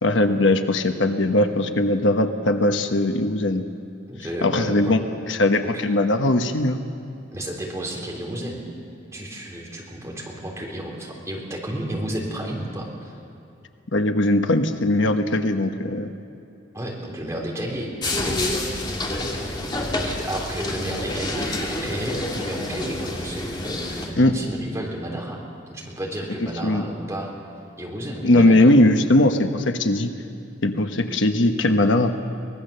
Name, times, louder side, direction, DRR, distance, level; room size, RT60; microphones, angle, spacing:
voice 1, 0.0-3.6 4.4-5.0 5.3-6.8 13.9-16.1 24.2-24.3 26.4-26.8 28.2-30.1 30.6-32.1, left 1 dB, 75° left, 7 dB, 1.1 m, -19 dB
voice 2, 4.1-4.9 7.3-8.6 9.1-13.1 16.7-17.9 18.2-18.6 19.9-27.3 27.8-28.7, right 1 dB, 15° right, -2 dB, 3.5 m, -32 dB
sound 1, 18.0-24.1, left 1 dB, 25° left, 2.4 m, -28 dB
24.0 x 19.0 x 6.8 m, 2.6 s
head